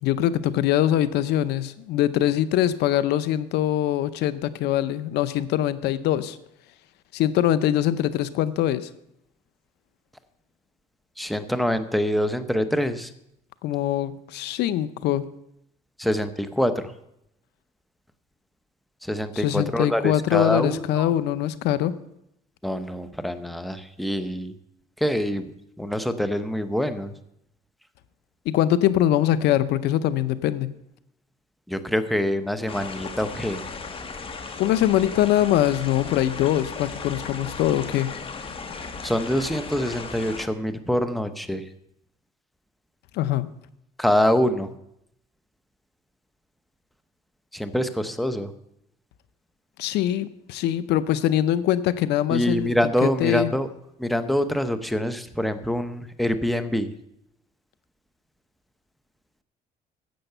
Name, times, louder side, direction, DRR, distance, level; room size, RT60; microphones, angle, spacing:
voice 1, 0.0-6.4 7.1-8.9 13.6-15.3 19.3-22.0 28.5-30.7 34.6-38.1 43.1-43.5 49.8-52.7 53.0-53.5, left 12 dB, 80° left, 15 dB, 0.6 m, -23 dB
voice 2, 11.2-13.1 16.0-16.9 19.0-21.1 22.6-24.5 25.0-25.5 25.8-27.1 31.7-33.6 39.0-41.6 44.0-44.7 47.5-48.5 52.3-53.7 54.0-56.9, equal, ahead, 10 dB, 0.8 m, -25 dB
sound 1, 32.7-40.5, left 4 dB, 30° left, 1.2 m, -36 dB
10.5 x 7.8 x 6.7 m, 0.80 s
cardioid pair, 110°, 17 cm